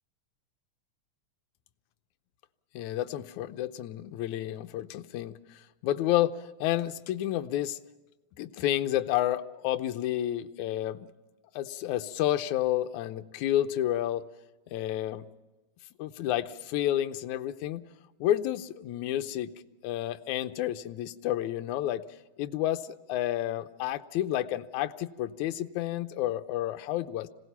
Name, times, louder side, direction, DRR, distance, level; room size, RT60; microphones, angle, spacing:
voice 1, 2.8-5.4 5.8-7.8 8.4-11.1 11.6-14.2 14.7-15.2 16.0-17.8 18.2-19.5 19.8-22.0 22.4-27.3, left 13 dB, 80° left, 9 dB, 2.2 m, -30 dB
26.5 x 18.5 x 5.7 m, 1.2 s
omnidirectional pair, 3.4 m